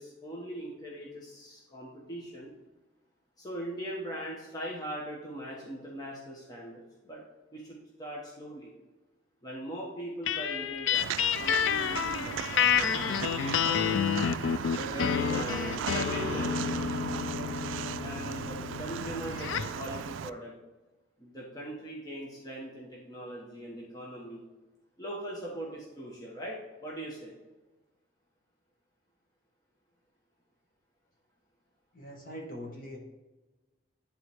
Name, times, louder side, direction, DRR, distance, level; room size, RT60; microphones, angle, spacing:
voice 1, 0.0-2.5 3.4-7.2 7.5-8.7 9.4-14.1 14.7-16.5 18.0-20.5 21.2-24.4 25.0-26.6 26.8-27.3, right 1 dB, 20° left, -4 dB, 1.3 m, -40 dB
sound 1, 10.3-19.8, left 8 dB, 80° left, 0.4 m, -30 dB
Walk footsteps, 10.9-20.3, right 8 dB, 85° right, 0.3 m, -37 dB
voice 2, 31.9-33.0, equal, 45° left, 0 dB, 1.6 m, -42 dB
11.0 x 4.0 x 3.5 m, 1.1 s
head